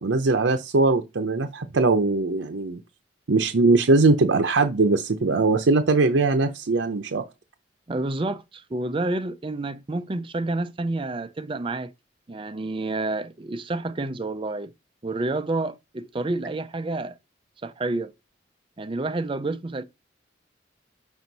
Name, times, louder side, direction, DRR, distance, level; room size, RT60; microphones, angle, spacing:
voice 1, 0.0-2.8 3.3-7.2, right 3 dB, 85° right, 0.6 m, -21 dB
voice 2, 7.9-11.9 12.3-14.7 15.0-17.1 17.6-18.1 18.8-19.8, right 2 dB, 30° right, 0.4 m, -29 dB
6.3 x 5.2 x 4.0 m
head